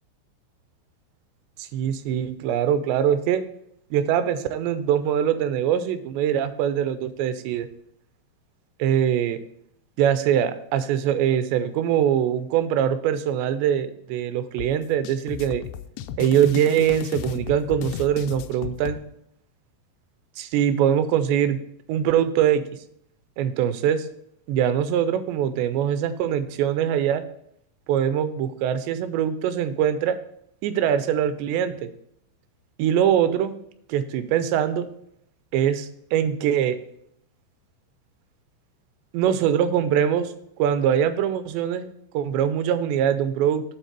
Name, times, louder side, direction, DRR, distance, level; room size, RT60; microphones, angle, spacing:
voice 1, 1.6-3.4 3.9-7.7 8.8-9.4 10.0-15.6 16.2-19.0 20.4-21.6 21.9-22.6 23.4-24.1 24.5-27.2 27.9-30.2 30.6-31.9 32.8-33.5 33.9-34.9 35.5-36.8 39.1-40.3 40.6-41.9 42.1-43.6, right 9 dB, 80° right, 11 dB, 2.7 m, -23 dB
sound 1, 14.6-19.0, left 11 dB, 85° left, 2.4 m, -35 dB
9.1 x 3.9 x 6.6 m, 0.71 s
omnidirectional pair, 5.2 m